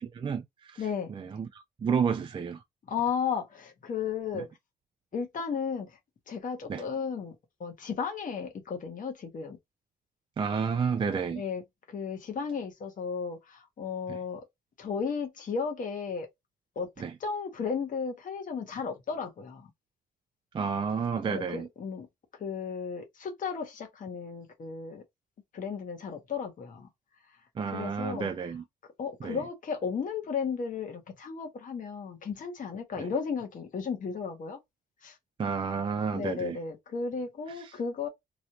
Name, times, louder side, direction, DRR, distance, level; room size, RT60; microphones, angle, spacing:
voice 1, 0.0-2.6 4.3-4.4 6.7-6.9 10.4-11.4 14.1-14.2 17.0-17.1 20.5-21.7 27.6-28.6 29.2-29.4 33.0-33.1 35.4-36.6 37.5-37.7, right 6 dB, 30° right, 0.4 m, -31 dB
voice 2, 0.8-1.1 2.9-4.5 5.1-6.0 6.3-9.6 11.3-11.6 11.9-14.4 14.8-16.3 16.8-16.9 17.2-19.7 21.2-22.1 22.3-25.0 25.5-26.9 27.7-28.3 29.0-34.6 35.0-35.2 36.1-38.1, left 6 dB, 50° left, 1.1 m, -34 dB
3.1 x 2.7 x 2.8 m
cardioid pair, 85°, 18 cm